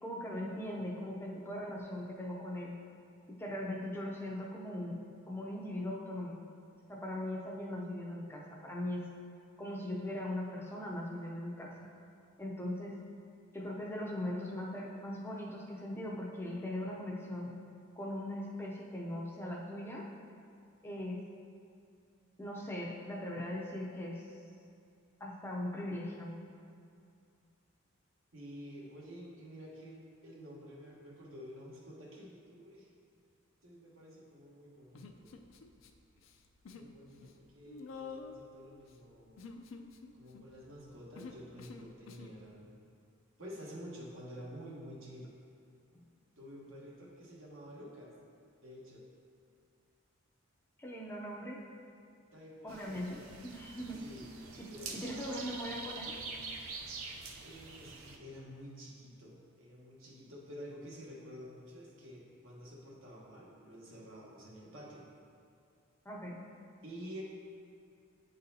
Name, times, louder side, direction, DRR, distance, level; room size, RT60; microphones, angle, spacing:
voice 1, 0.0-2.8 3.3-6.4 6.9-9.0 9.6-11.9 12.4-13.0 13.5-17.5 18.0-20.1 20.8-21.2 22.4-24.3 25.2-26.4 45.9-46.0 50.8-51.6 52.6-54.0 54.6-56.2 66.1-66.4, left 1 dB, 10° left, -2 dB, 0.5 m, -40 dB
voice 2, 28.3-32.9 33.6-35.5 36.7-39.5 40.1-42.7 43.4-45.3 46.4-48.2 48.6-49.0 52.3-53.0 53.9-54.3 54.7-55.4 57.4-65.1 66.8-67.2, equal, 70° right, -3 dB, 1.1 m, -50 dB
Human voice, 34.9-35.9 36.2-36.9 37.2-42.4, left 4 dB, 70° left, 0.4 m, -49 dB
sound 1, 52.7-58.2, right 4 dB, 90° right, 0.5 m, -45 dB
9.0 x 4.0 x 2.7 m, 2.4 s
head